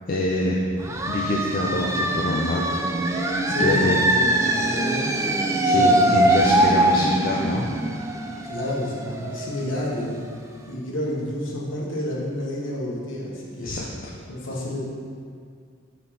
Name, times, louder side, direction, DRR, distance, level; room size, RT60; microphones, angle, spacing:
voice 1, 0.1-0.6 1.1-2.7 3.6-4.1 5.6-7.7 13.6-13.9, left 1 dB, 45° left, -4 dB, 0.5 m, -25 dB
sound 1, 0.8-10.3, right 1 dB, 15° right, 0.3 m, -22 dB
voice 2, 3.4-5.1 5.7-6.2 8.4-10.3 10.7-13.8 14.3-14.9, left 1 dB, 65° left, -4 dB, 1.3 m, -29 dB
5.3 x 4.3 x 5.7 m, 2.2 s
head